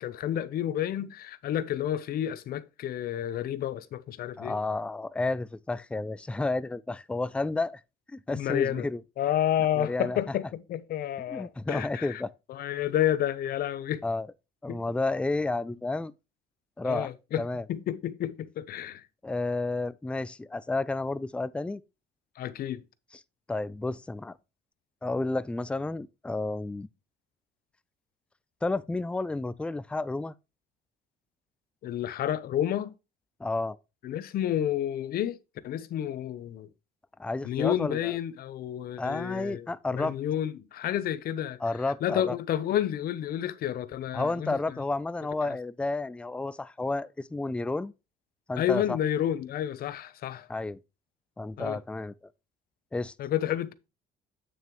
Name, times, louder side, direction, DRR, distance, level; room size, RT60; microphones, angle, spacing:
voice 1, 0.0-4.5 8.3-8.9 9.2-12.2 12.5-14.0 14.7-14.8 16.8-17.4 17.7-19.0 22.4-22.8 31.8-32.9 34.0-35.4 35.6-36.7 37.4-39.7 39.9-41.6 42.0-44.6 48.6-50.5 51.6-51.8 53.2-53.7, left 11 dB, 60° left, 0.8 m, -30 dB
voice 2, 4.4-7.8 8.1-9.0 9.8-10.2 11.3-12.3 14.0-14.3 14.6-16.1 16.8-17.1 17.4-17.6 19.2-21.8 23.5-24.4 25.0-26.9 28.6-30.3 33.4-33.8 37.2-38.1 39.0-40.1 41.6-42.3 44.1-47.9 48.5-49.0 50.5-50.8 51.4-52.1 52.9-53.1, left 2 dB, 5° left, 0.4 m, -31 dB
8.8 x 6.3 x 3.1 m
cardioid pair, 110°, 17 cm